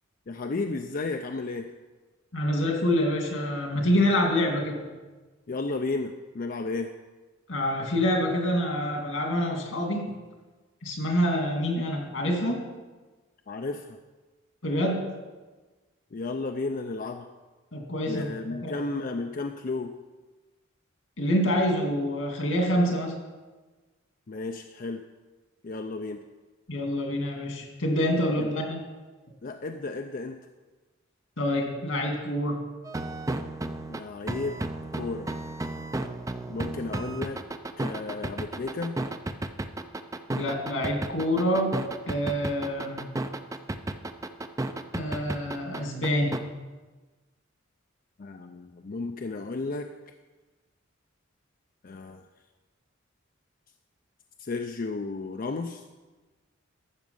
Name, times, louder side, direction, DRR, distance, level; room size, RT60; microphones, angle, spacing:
voice 1, 0.3-1.7 5.5-6.9 13.5-14.0 16.1-17.3 18.1-19.9 24.3-25.0 25.6-26.2 28.4-28.5 29.4-30.4 33.9-34.5 34.9-35.3 36.5-37.4 37.8-39.0 48.2-49.9 51.8-52.2 54.4-55.8, left 3 dB, 45° left, 5 dB, 0.5 m, -33 dB
voice 2, 2.3-4.8 7.5-10.1 10.8-12.6 14.6-15.0 17.7-18.3 18.6-18.8 21.2-23.1 26.7-28.8 31.4-32.6 40.3-41.7 42.1-43.1 44.9-46.4, equal, 75° left, 2 dB, 2.2 m, -26 dB
sound 1, 32.8-46.4, right 2 dB, 15° right, 0.4 m, -33 dB
12.5 x 7.3 x 5.4 m, 1.3 s
head